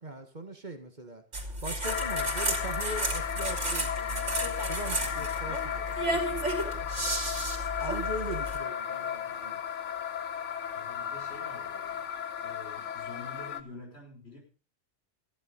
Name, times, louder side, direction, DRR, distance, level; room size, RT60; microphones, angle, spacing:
voice 1, 0.0-1.2 1.6-7.2 7.8-9.6, right 1 dB, 40° right, 7 dB, 1.8 m, -41 dB
sound 1, 1.3-8.6, right 1 dB, 85° right, 3.5 m, -33 dB
sound 2, 1.8-13.6, left 8 dB, 85° left, 1.2 m, -34 dB
voice 2, 10.7-12.1 12.4-14.4, left 2 dB, 60° left, 0 dB, 5.7 m, -48 dB
14.5 x 11.5 x 5.4 m, 0.37 s
omnidirectional pair, 1.2 m